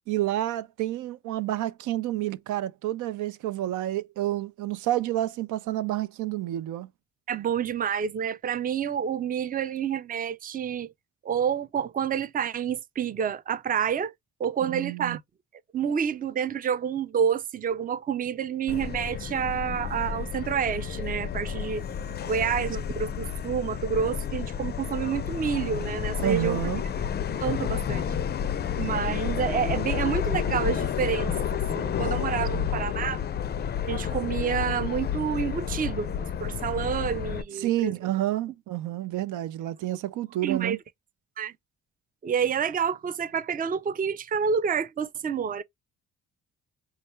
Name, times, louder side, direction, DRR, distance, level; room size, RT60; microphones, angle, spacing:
voice 1, 0.1-6.9 14.6-15.2 26.2-26.8 32.5-32.8 37.5-40.8, right 14 dB, 80° right, 0.6 m, -29 dB
voice 2, 7.3-10.9 11.2-14.1 14.4-15.2 15.7-21.8 22.3-26.6 27.4-28.1 28.8-33.2 33.9-37.9 40.4-40.8 41.4-41.5 42.2-45.6, right 7 dB, 30° right, 0.5 m, -28 dB
Subway metro underground, 18.7-37.4, left 8 dB, 35° left, 0.4 m, -30 dB
4.1 x 2.4 x 3.1 m
cardioid pair, 90°, 30 cm